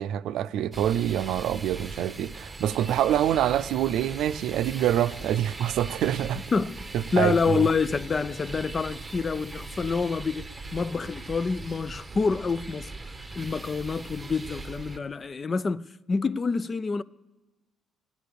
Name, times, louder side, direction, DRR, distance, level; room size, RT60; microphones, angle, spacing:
voice 1, 0.0-6.4 6.9-7.6, right 11 dB, 75° right, 0.4 m, -26 dB
sound 1, 0.7-15.0, right 3 dB, 15° right, 0.8 m, -40 dB
voice 2, 6.5-6.8 7.1-12.9 13.4-17.0, left 4 dB, 30° left, 0.3 m, -27 dB
14.5 x 9.2 x 6.7 m
cardioid pair, 110°, 0 cm